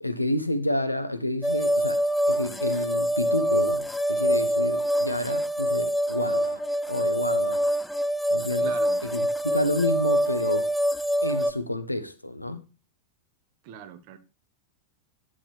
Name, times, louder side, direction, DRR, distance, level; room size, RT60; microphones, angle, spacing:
voice 1, 0.0-2.0 2.3-6.6 6.9-7.6 8.3-8.7 9.0-9.2 9.5-10.7 11.2-12.6, left 1 dB, 85° left, 1.1 m, -29 dB
sound 1, 1.4-11.5, equal, 5° left, 0.6 m, -25 dB
voice 2, 8.6-9.0 13.6-14.2, right 9 dB, 45° right, 1.5 m, -41 dB
10.0 x 7.5 x 3.3 m
figure-of-eight pair, 90°, 0 cm